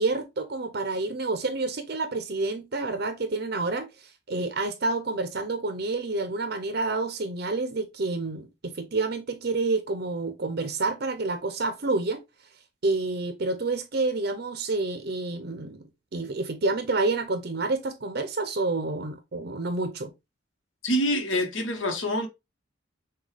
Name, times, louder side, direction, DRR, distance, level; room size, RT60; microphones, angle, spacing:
voice 1, 0.0-12.2 12.8-15.8 16.1-20.1, right 3 dB, 50° right, 0.6 m, -29 dB
voice 2, 20.8-22.3, equal, 75° left, 1.1 m, -26 dB
6.2 x 2.3 x 3.2 m
head